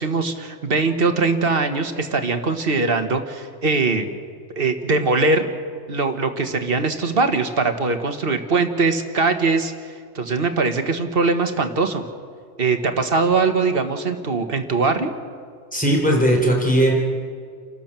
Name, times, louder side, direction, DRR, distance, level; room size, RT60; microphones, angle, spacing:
voice 1, 0.0-4.1 4.6-5.4 5.9-9.7 10.1-12.0 12.6-15.1, right 3 dB, 55° right, 7 dB, 1.7 m, -21 dB
voice 2, 15.7-16.9, right 1 dB, 5° left, -1 dB, 4.3 m, -18 dB
30.0 x 12.5 x 7.5 m, 2.1 s
omnidirectional pair, 1.2 m